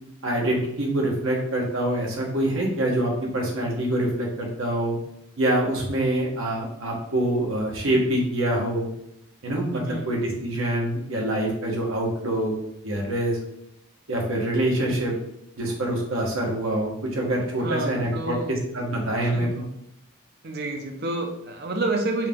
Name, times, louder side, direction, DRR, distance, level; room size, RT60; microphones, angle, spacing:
voice 1, 0.2-5.0 5.4-8.9 9.4-12.5 12.8-13.4 14.1-15.1 15.6-19.6, right 1 dB, 75° right, -1 dB, 1.2 m, -25 dB
voice 2, 9.7-10.1 17.6-18.5 19.2-19.5 20.4-22.3, right 2 dB, 50° right, 3 dB, 0.7 m, -29 dB
4.6 x 2.9 x 3.6 m, 0.79 s
head